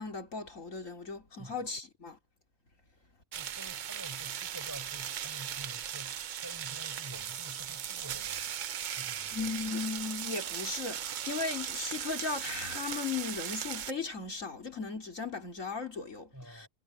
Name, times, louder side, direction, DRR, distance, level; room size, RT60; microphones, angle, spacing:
voice 1, 0.0-2.2 9.3-16.7, left 4 dB, 70° left, 3.7 m, -37 dB
sound 1, 3.3-13.9, right 9 dB, 65° right, 0.4 m, -38 dB
voice 2, 3.4-8.4 8.9-9.4 16.3-16.7, equal, 15° right, 7.1 m, -49 dB
omnidirectional pair, 1.4 m